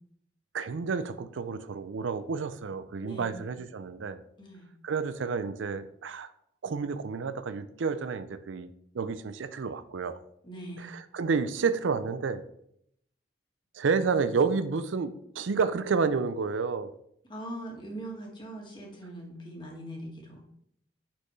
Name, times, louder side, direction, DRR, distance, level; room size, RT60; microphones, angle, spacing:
voice 1, 0.5-4.2 4.8-6.3 6.6-8.7 8.9-10.2 10.8-12.4 13.7-16.9, right 5 dB, 85° right, 12 dB, 0.5 m, -30 dB
voice 2, 3.0-3.5 4.4-4.7 10.4-10.9 17.3-20.4, right 1 dB, 25° left, -1 dB, 1.7 m, -41 dB
9.9 x 4.4 x 3.2 m, 0.72 s
head